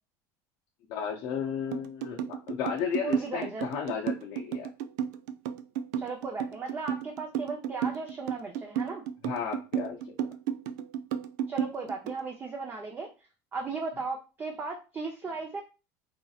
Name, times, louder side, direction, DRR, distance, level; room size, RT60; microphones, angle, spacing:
voice 1, 0.9-4.7 9.2-10.0, left 7 dB, 55° left, -2 dB, 0.6 m, -33 dB
sound 1, 1.7-12.2, right 8 dB, 85° right, 0.4 m, -32 dB
voice 2, 3.0-3.7 6.0-9.0 11.5-13.1 13.5-15.6, right 4 dB, 20° right, 1 dB, 0.6 m, -36 dB
4.2 x 2.7 x 2.4 m, 0.31 s
cardioid pair, 150°, 9 cm